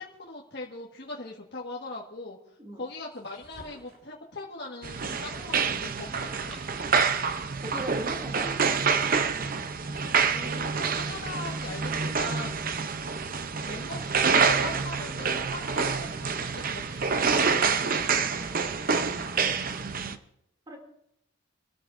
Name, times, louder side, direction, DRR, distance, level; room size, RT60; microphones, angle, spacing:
voice 1, 0.0-6.5 10.3-12.6 13.6-17.8, left 2 dB, 50° left, -3 dB, 1.6 m, -40 dB
sound 1, 3.1-4.1 6.1-7.2 8.5-9.4, right 1 dB, 75° right, 7.4 m, -52 dB
sound 2, 4.8-20.2, right 5 dB, 40° right, 0.7 m, -27 dB
voice 2, 7.6-8.7 20.7-20.8, right 1 dB, 20° right, 1 dB, 2.7 m, -38 dB
27.0 x 13.0 x 2.6 m, 0.78 s
head